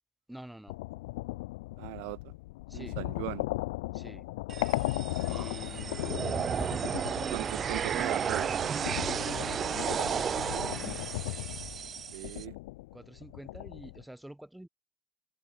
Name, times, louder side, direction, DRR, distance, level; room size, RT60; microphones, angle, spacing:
voice 1, 0.3-0.7 2.7-3.0 3.9-4.3 5.2-6.1 8.6-10.4 12.9-14.7, right 1 dB, 5° right, 5.3 m, -47 dB
sound 1, 0.7-14.0, left 21 dB, 85° left, 0.6 m, -37 dB
voice 2, 1.8-2.3 2.7-3.4 7.3-8.5 12.1-12.5, right 36 dB, 80° right, 1.6 m, -38 dB
sound 2, 4.5-12.4, right 7 dB, 45° right, 0.5 m, -33 dB
open air
hypercardioid pair, 65°, 0 cm